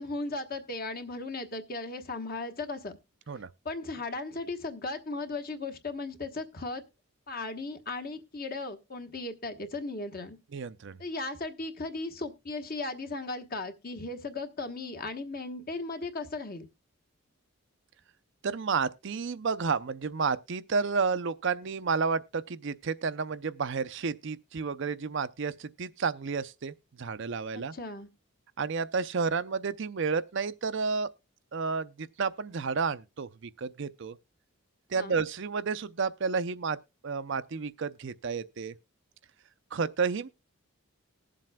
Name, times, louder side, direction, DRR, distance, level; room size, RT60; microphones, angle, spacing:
voice 1, 0.0-3.0 3.6-6.8 7.3-10.4 11.0-16.7 27.5-28.1 34.9-35.1, left 3 dB, 45° left, 1.2 m, -36 dB
voice 2, 10.5-11.0 18.4-27.7 28.6-31.1 31.5-34.2 34.9-36.8 37.0-38.7 39.7-40.3, right 5 dB, 55° right, 0.5 m, -31 dB
20.0 x 7.5 x 2.2 m
head